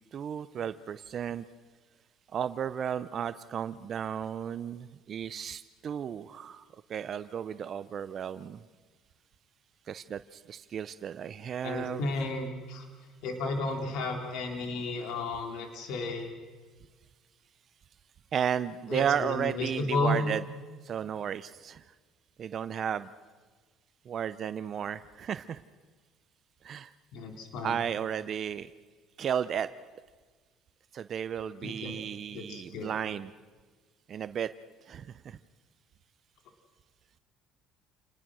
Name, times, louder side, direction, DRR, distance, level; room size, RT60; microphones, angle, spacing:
voice 1, 0.1-1.4 2.3-6.6 6.9-8.6 9.9-12.0 18.3-20.4 20.8-21.8 22.4-23.1 24.1-25.6 26.6-26.9 27.6-28.7 29.2-29.7 30.9-33.3 34.1-34.5 34.9-35.4, right 8 dB, 45° right, 13 dB, 0.6 m, -34 dB
voice 2, 11.6-12.8 13.2-16.3 18.9-20.2 27.1-27.8 31.6-31.9 32.3-32.9, left 2 dB, 70° left, 3 dB, 3.4 m, -33 dB
28.5 x 20.0 x 6.3 m, 1.4 s
cardioid pair, 115°, 0 cm